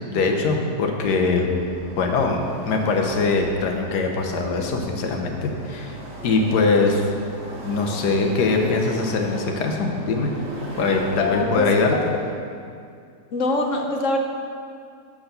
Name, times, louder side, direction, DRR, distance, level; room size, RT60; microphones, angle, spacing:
voice 1, 0.1-1.6 2.0-7.1 7.6-10.3 10.8-11.9, left 3 dB, 75° left, 2 dB, 1.5 m, -22 dB
sound 1, 1.1-12.3, right 1 dB, 90° right, 2.4 m, -37 dB
voice 2, 11.2-12.0 13.3-14.2, left 2 dB, 55° left, 2 dB, 1.0 m, -24 dB
6.9 x 5.9 x 6.7 m, 2.3 s
omnidirectional pair, 1.8 m